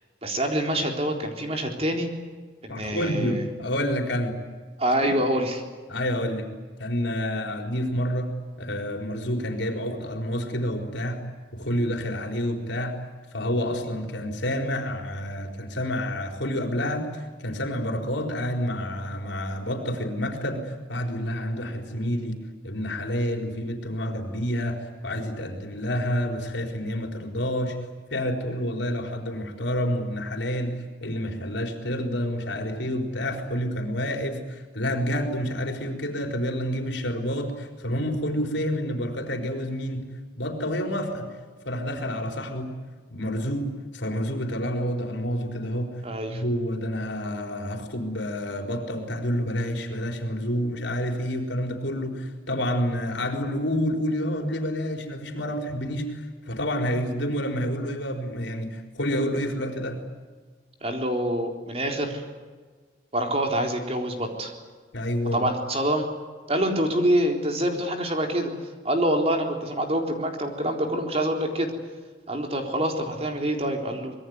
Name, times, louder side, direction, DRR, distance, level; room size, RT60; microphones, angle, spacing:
voice 1, 0.2-2.1 2.6-3.4 4.8-5.6 46.0-46.4 60.8-62.2 63.1-64.5 65.3-66.1 66.5-68.5 68.8-71.7 72.3-74.1, right 1 dB, 30° right, 3 dB, 4.0 m, -26 dB
voice 2, 2.7-4.4 5.0-5.1 5.9-6.5 6.8-11.2 11.5-13.0 13.3-27.8 28.1-40.1 40.4-41.3 41.6-42.8 43.1-46.0 46.3-60.0 64.9-65.5, equal, 80° left, 3 dB, 4.4 m, -29 dB
25.5 x 21.5 x 9.6 m, 1.4 s
head